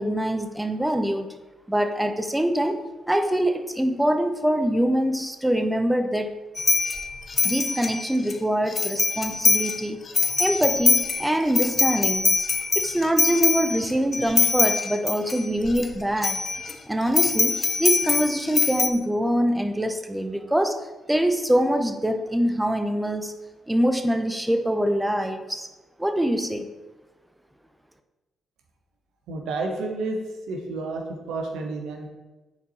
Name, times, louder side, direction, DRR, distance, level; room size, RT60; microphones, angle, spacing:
voice 1, 0.0-1.4 1.7-6.3 7.4-10.0 10.4-12.5 12.7-16.4 16.9-23.3 23.7-25.7 26.0-26.7, right 1 dB, 10° right, 7 dB, 0.6 m, -24 dB
sound 1, 6.6-8.3 8.7-9.8 10.1-15.9 16.2-16.7 17.2-18.9, left 4 dB, 40° left, 0.6 m, -23 dB
voice 2, 29.3-32.1, right 3 dB, 75° right, 2 dB, 1.0 m, -30 dB
7.0 x 4.4 x 4.2 m, 1.1 s
hypercardioid pair, 45°, 0 cm